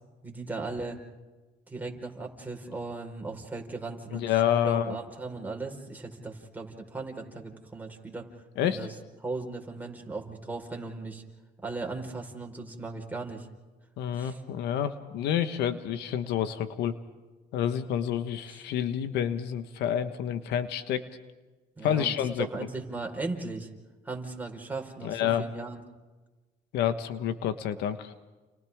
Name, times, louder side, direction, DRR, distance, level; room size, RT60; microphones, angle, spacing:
voice 1, 0.2-1.0 1.7-8.2 8.6-8.9 9.2-11.2 11.6-13.5 14.1-14.4 18.5-18.6 21.8-23.7 24.0-25.8, right 3 dB, 10° right, 1 dB, 4.7 m, -37 dB
voice 2, 4.1-5.0 8.6-8.8 14.0-17.0 17.5-21.0 21.8-22.5 25.0-25.4 26.7-28.1, left 9 dB, 80° left, 10 dB, 1.3 m, -28 dB
30.0 x 29.5 x 3.7 m, 1.2 s
cardioid pair, 110°, 17 cm